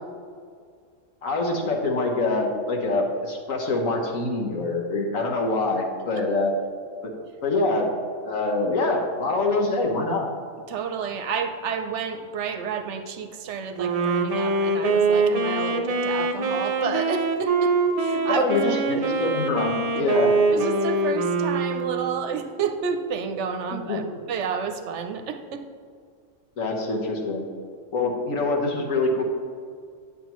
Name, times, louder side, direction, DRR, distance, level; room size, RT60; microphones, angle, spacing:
voice 1, 1.2-6.5 7.0-7.1 7.4-7.9 8.2-10.3 18.3-20.3 23.7-24.2 26.6-27.5 27.9-29.2, left 2 dB, 85° left, 0 dB, 1.6 m, -25 dB
voice 2, 10.7-19.0 20.5-24.0 24.3-25.6, right 6 dB, 70° right, 7 dB, 0.9 m, -30 dB
Wind instrument woodwind instrument, 13.8-22.4, right 3 dB, 45° right, 0.5 m, -24 dB
9.3 x 8.2 x 3.0 m, 2.1 s
omnidirectional pair, 1.3 m